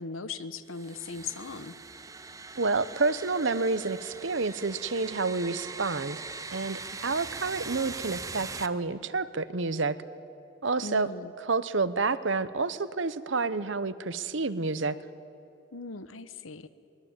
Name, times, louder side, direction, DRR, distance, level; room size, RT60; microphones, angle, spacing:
voice 1, 0.0-1.7 7.0-7.2 10.8-11.3 15.7-16.7, left 4 dB, 85° left, 13 dB, 1.1 m, -39 dB
sound 1, 0.7-8.7, right 4 dB, 15° right, 0.7 m, -41 dB
voice 2, 2.6-6.2 6.5-10.0 10.6-11.1 11.5-15.0, right 3 dB, 65° right, 14 dB, 0.9 m, -29 dB
23.0 x 21.5 x 8.9 m, 2.8 s
head